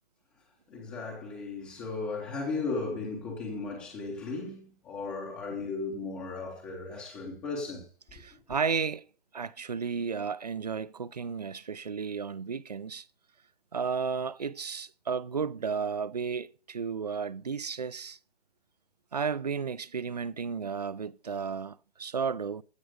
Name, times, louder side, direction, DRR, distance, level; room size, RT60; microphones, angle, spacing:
voice 1, 0.7-7.9 8.2-8.4, left 3 dB, 5° left, 0.7 m, -36 dB
voice 2, 8.1-9.1 9.3-13.1 13.7-18.2 19.1-22.6, right 6 dB, 40° right, 0.4 m, -33 dB
15.5 x 6.1 x 4.8 m
hypercardioid pair, 170°, 33 cm